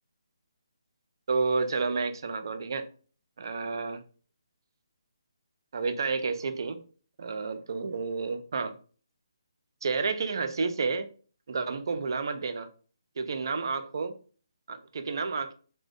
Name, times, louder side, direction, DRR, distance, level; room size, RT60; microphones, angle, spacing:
voice 1, 1.3-2.9 3.4-4.0 5.7-6.8 7.2-8.7 9.8-11.1 11.5-12.7 13.2-14.2 14.7-15.5, right 4 dB, 55° right, 0.3 m, -30 dB
2.5 x 2.1 x 2.4 m
figure-of-eight pair, 150°, 3 cm